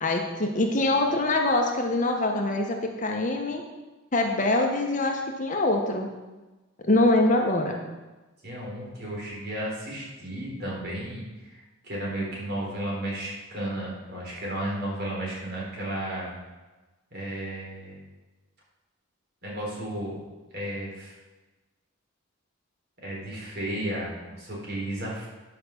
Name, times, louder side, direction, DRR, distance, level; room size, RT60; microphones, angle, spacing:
voice 1, 0.0-3.6 4.1-6.1 6.8-7.8, left 2 dB, 35° left, 2 dB, 1.1 m, -24 dB
voice 2, 8.4-11.6 11.8-16.3 17.1-18.0 19.4-20.2 20.5-21.1 23.0-25.3, right 1 dB, 50° right, -4 dB, 3.8 m, -33 dB
10.5 x 5.6 x 7.0 m, 1.2 s
head